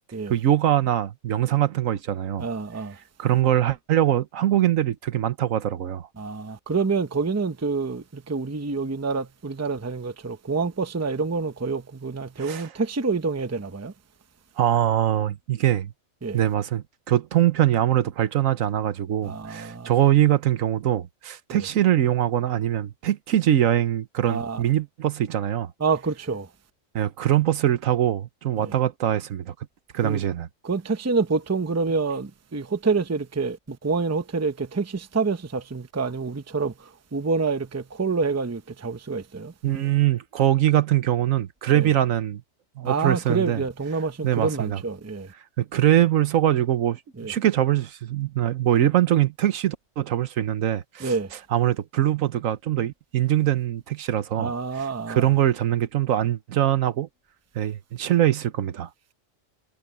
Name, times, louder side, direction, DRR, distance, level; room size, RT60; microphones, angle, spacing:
voice 1, 0.3-2.5 3.2-6.0 12.4-12.7 14.6-15.9 16.3-25.7 26.9-29.5 29.9-30.5 39.6-42.4 42.8-43.6 44.2-44.8 45.6-51.1 51.5-57.1 57.5-58.9, right 12 dB, 80° right, 1.3 m, -23 dB
voice 2, 2.4-3.0 6.2-13.9 16.2-16.4 19.2-19.9 21.5-21.7 24.3-24.6 25.8-26.5 28.6-28.7 30.0-30.2 30.6-39.5 41.7-41.9 42.8-45.3 47.2-47.3 51.0-51.3 54.4-55.2, right 4 dB, 15° right, 0.6 m, -27 dB
omnidirectional pair, 1.4 m